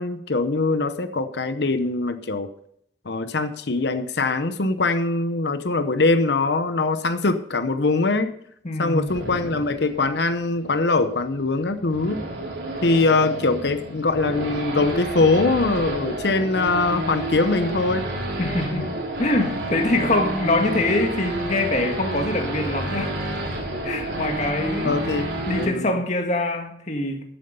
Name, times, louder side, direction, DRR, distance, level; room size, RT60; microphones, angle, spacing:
voice 1, 0.0-2.5 3.0-8.3 8.8-12.2 12.8-18.1 24.8-25.9, left 3 dB, 65° left, 10 dB, 0.8 m, -22 dB
voice 2, 8.6-9.1 18.4-18.9 19.2-23.3 23.8-25.2 25.5-27.2, left 2 dB, 40° left, 3 dB, 1.8 m, -24 dB
Race car auto racing / Idling / Accelerating revving vroom, 9.1-25.7, right 1 dB, 75° right, 3.8 m, -30 dB
13.0 x 8.0 x 5.4 m, 0.70 s
head